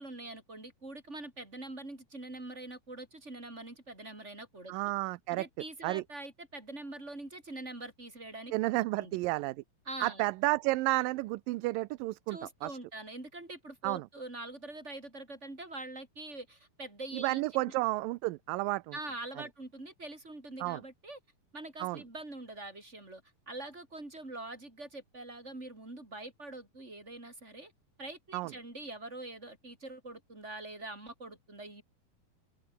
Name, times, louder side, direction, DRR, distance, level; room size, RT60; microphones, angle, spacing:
voice 1, 0.0-4.7 5.3-9.2 9.9-10.2 12.3-17.8 18.9-21.2 21.5-27.7 28.0-31.8, right 2 dB, 20° right, 6.0 m, -44 dB
voice 2, 4.7-5.5 5.8-6.0 8.5-9.6 10.0-12.8 13.8-14.0 17.1-18.9 20.6-20.8 21.8-22.0 28.3-28.5, right 20 dB, 80° right, 2.3 m, -31 dB
open air
omnidirectional pair, 4.2 m